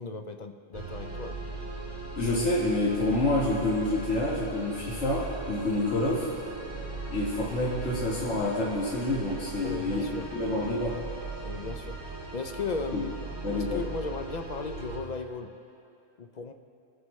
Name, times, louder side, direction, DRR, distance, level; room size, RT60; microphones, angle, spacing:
voice 1, 0.0-1.4 7.8-8.0 9.6-10.3 11.4-12.0 12.3-13.1 13.5-15.6 16.2-16.5, left 4 dB, 50° left, 5 dB, 0.5 m, -36 dB
sound 1, 0.7-15.0, right 2 dB, 35° right, 3.2 m, -39 dB
voice 2, 2.2-6.3 7.1-10.0 10.3-11.0 12.9-13.0 13.4-13.8, left 2 dB, 70° left, -6 dB, 1.7 m, -28 dB
23.0 x 7.7 x 3.1 m, 2.6 s
omnidirectional pair, 1.2 m